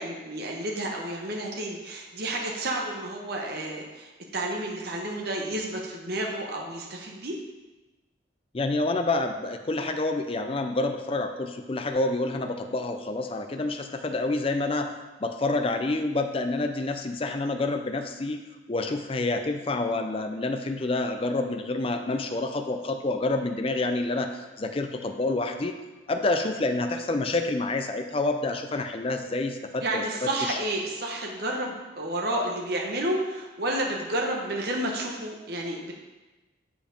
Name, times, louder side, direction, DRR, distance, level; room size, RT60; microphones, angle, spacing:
voice 1, 0.0-7.4 29.8-35.9, right 1 dB, 50° right, 0 dB, 1.0 m, -31 dB
voice 2, 8.5-14.9 15.2-18.4 18.7-25.8 26.1-30.6, left 2 dB, 30° left, 6 dB, 0.4 m, -28 dB
6.9 x 5.1 x 5.2 m, 1.1 s
head